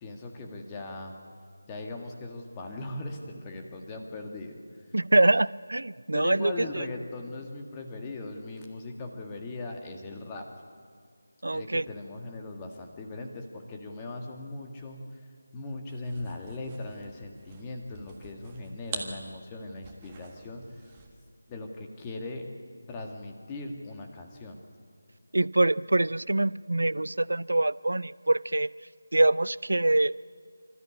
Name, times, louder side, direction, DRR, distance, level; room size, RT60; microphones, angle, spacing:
voice 1, 0.0-1.2 1.7-4.6 6.1-10.5 11.5-15.2 15.5-20.7 21.5-22.5 22.9-24.6, left 2 dB, 15° left, 2 dB, 1.7 m, -39 dB
voice 2, 4.9-6.9 11.4-11.8 25.3-28.7 29.1-30.2, right 2 dB, 65° right, 20 dB, 0.5 m, -24 dB
sound 1, 15.9-21.3, right 5 dB, 20° right, 1.6 m, -45 dB
26.0 x 13.5 x 8.5 m, 2.1 s
figure-of-eight pair, 160°, 0 cm